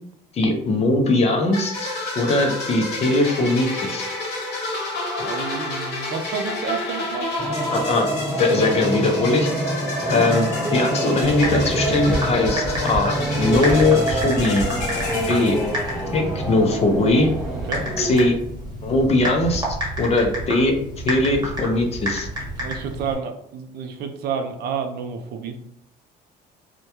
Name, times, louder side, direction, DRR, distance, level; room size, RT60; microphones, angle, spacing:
voice 1, 0.3-1.9 2.2-4.1 7.7-8.1 8.4-9.5 10.1-14.6 15.3-15.6 16.1-17.3 18.0-18.3 18.8-19.7 20.0-20.8 21.0-22.3, left 2 dB, 40° left, 4 dB, 0.5 m, -20 dB
sound 1, 1.5-16.3, left 2 dB, 75° left, 0.8 m, -30 dB
voice 2, 5.2-7.3 17.5-17.9 22.6-25.6, right 6 dB, 70° right, 6 dB, 0.4 m, -30 dB
sound 2, 7.4-18.3, right 1 dB, 5° right, 1.1 m, -27 dB
Typing, 11.2-23.1, right 1 dB, 25° right, 1.0 m, -30 dB
2.2 x 2.1 x 2.8 m, 0.71 s
cardioid pair, 110°, 17 cm